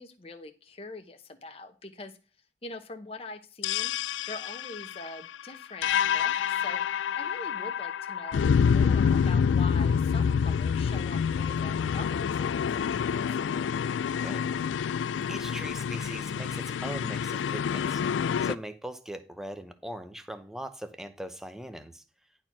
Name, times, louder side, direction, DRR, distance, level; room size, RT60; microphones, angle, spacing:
voice 1, 0.0-2.2 2.6-3.9 4.2-13.4, left 2 dB, 30° left, 0.9 m, -43 dB
sound 1, 3.6-18.6, left 7 dB, 85° left, 0.3 m, -27 dB
voice 2, 14.0-14.5 15.3-22.0, right 1 dB, 5° right, 0.8 m, -40 dB
10.5 x 4.3 x 6.0 m
head